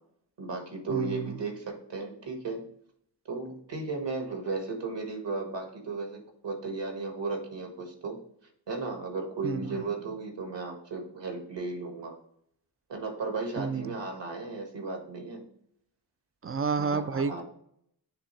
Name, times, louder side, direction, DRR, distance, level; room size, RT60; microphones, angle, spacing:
voice 1, 0.4-2.6 3.2-8.2 8.7-12.1 12.9-15.4 16.8-17.4, right 3 dB, 65° right, 3 dB, 1.7 m, -35 dB
voice 2, 0.9-1.4 9.4-9.8 13.6-13.9 16.4-17.4, right 5 dB, 30° right, 13 dB, 0.4 m, -30 dB
9.9 x 3.4 x 3.2 m, 0.71 s
wide cardioid pair, 85°, 47 cm